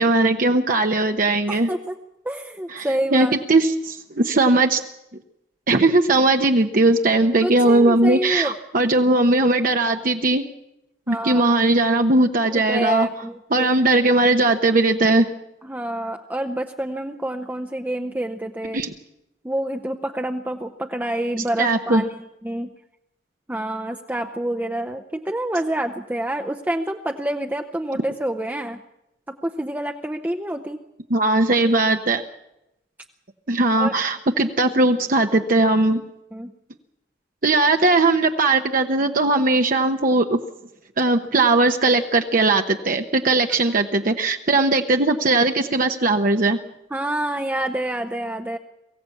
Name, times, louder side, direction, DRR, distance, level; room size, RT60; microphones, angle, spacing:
voice 1, 0.0-1.7 2.7-4.8 5.7-10.4 11.1-13.1 13.5-15.3 18.7-18.9 21.6-22.0 31.1-32.2 33.5-36.0 37.4-40.4 41.0-46.6, right 2 dB, 50° right, 5 dB, 1.0 m, -19 dB
voice 2, 1.5-2.0 2.2-3.3 7.4-8.5 11.1-11.6 12.4-13.7 15.6-18.8 19.4-22.7 23.5-28.8 29.3-30.8 33.8-33.9 36.3-36.5 43.7-43.8 46.9-48.6, right 1 dB, 10° right, 3 dB, 0.7 m, -27 dB
23.0 x 15.5 x 8.4 m, 0.89 s
head